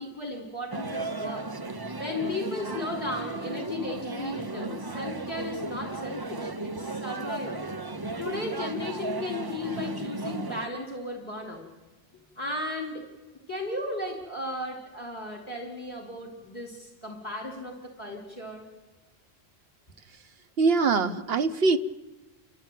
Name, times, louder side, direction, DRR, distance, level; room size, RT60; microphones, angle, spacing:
voice 1, 0.0-1.5 2.0-7.7 8.2-11.7 12.4-13.1 13.5-18.6, left 2 dB, 25° left, -1 dB, 3.1 m, -35 dB
sound 1, 0.7-10.7, right 2 dB, 25° right, 0.7 m, -35 dB
voice 2, 20.6-21.8, right 4 dB, 70° right, 9 dB, 1.1 m, -23 dB
29.5 x 13.5 x 9.1 m, 1.2 s
omnidirectional pair, 1.1 m